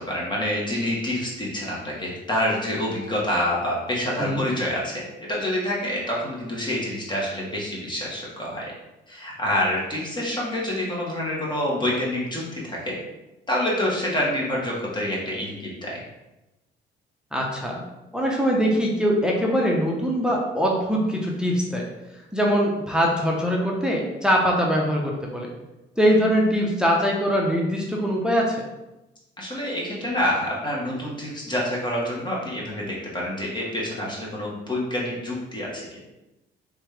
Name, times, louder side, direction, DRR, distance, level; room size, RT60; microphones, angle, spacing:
voice 1, 0.1-8.7 9.1-12.9 13.5-16.0 29.4-36.0, left 1 dB, 25° left, -4 dB, 1.5 m, -27 dB
voice 2, 17.3-17.8 18.1-21.8 22.3-25.5 26.0-28.6, equal, 5° right, -2 dB, 0.7 m, -22 dB
3.5 x 3.2 x 3.3 m, 1.0 s
cardioid pair, 90°, 20 cm